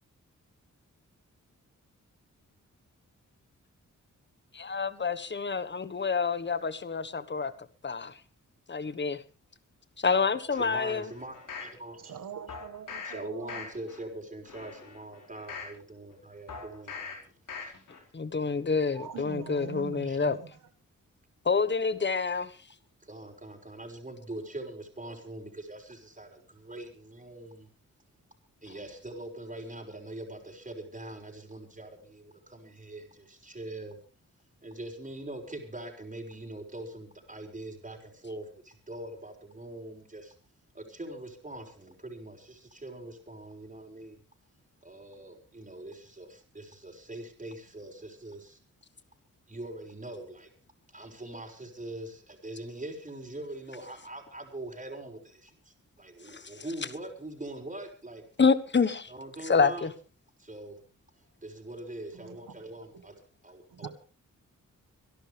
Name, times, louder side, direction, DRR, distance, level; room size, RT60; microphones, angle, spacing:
voice 1, 4.5-7.5 7.8-8.2 8.7-9.2 10.0-11.1 18.1-20.4 21.4-22.6 56.2-56.5 58.4-59.1 59.5-59.9, left 5 dB, 35° left, 1.3 m, -27 dB
sound 1, 10.5-11.8 12.5-13.1 13.5-14.0 14.4-15.8 16.5-17.1 17.5-18.0 18.4-18.5, left 5 dB, 85° left, 4.8 m, -42 dB
voice 2, 10.6-12.2 13.0-17.3 17.6-17.7 20.0-20.2 23.0-27.7 28.6-34.0 34.6-40.3 40.7-44.2 44.8-48.6 49.5-50.5 50.9-58.2 59.1-59.9 60.4-60.8 61.4-63.9, right 1 dB, 25° right, 5.7 m, -43 dB
voice 3, 12.0-13.7 18.9-20.5 62.1-62.6 63.7-63.9, right 7 dB, 80° right, 1.8 m, -43 dB
26.0 x 12.0 x 3.5 m
cardioid pair, 70°, 31 cm